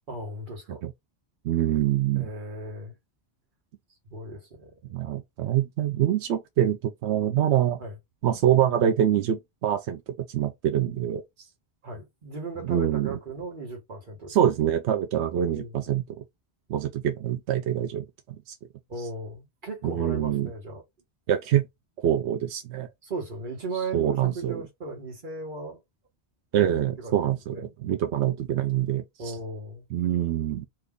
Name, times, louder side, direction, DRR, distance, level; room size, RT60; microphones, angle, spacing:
voice 1, 0.1-0.9 2.1-3.0 4.0-4.9 7.8-8.0 11.8-14.4 15.3-15.9 18.9-20.8 23.0-25.8 26.5-27.7 29.2-29.9, right 2 dB, 50° right, 1.4 m, -37 dB
voice 2, 1.4-2.3 4.9-7.8 8.2-10.0 10.3-11.2 12.7-13.1 14.3-16.2 16.7-18.0 18.5-18.6 19.8-20.5 21.3-21.7 22.0-22.9 23.9-24.6 26.5-29.0 29.9-30.7, right 11 dB, 90° right, 0.9 m, -25 dB
2.9 x 2.5 x 3.5 m
omnidirectional pair, 1.1 m